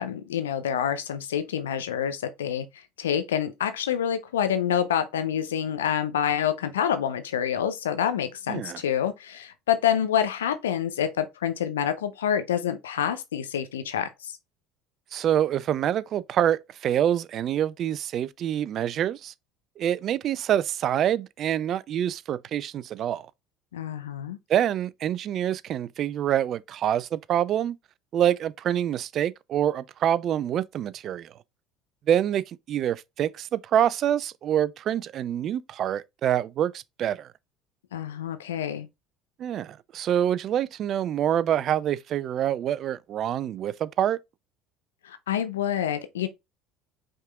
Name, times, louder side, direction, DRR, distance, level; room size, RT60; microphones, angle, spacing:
voice 1, 0.0-2.7 3.0-14.3 23.7-24.4 37.9-38.9 45.0-46.3, left 9 dB, 80° left, 0.5 m, -27 dB
voice 2, 8.5-8.8 15.1-19.3 19.8-23.3 24.5-27.8 28.1-31.3 32.1-37.3 39.4-44.2, right 10 dB, 45° right, 0.3 m, -26 dB
5.4 x 3.6 x 2.3 m
figure-of-eight pair, 65°, 0 cm